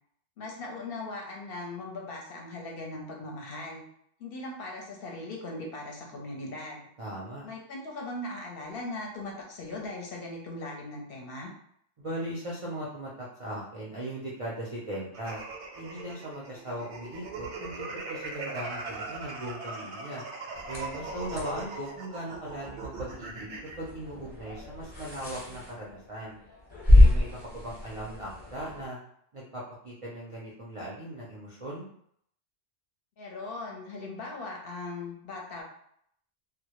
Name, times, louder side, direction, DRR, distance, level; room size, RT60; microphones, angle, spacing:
voice 1, 0.4-3.8 4.2-6.9 7.4-11.5 33.2-35.6, left 2 dB, 65° left, -1 dB, 0.7 m, -39 dB
voice 2, 7.0-7.5 12.0-15.4 15.8-20.2 20.7-26.4 26.9-29.0 29.3-31.9, right 1 dB, 55° right, -5 dB, 0.3 m, -38 dB
sound 1, 15.1-23.8, right 3 dB, 85° right, 0.9 m, -39 dB
sound 2, 20.5-28.9, left 1 dB, 30° left, 0.8 m, -27 dB
2.1 x 2.0 x 2.8 m, 0.69 s
omnidirectional pair, 1.1 m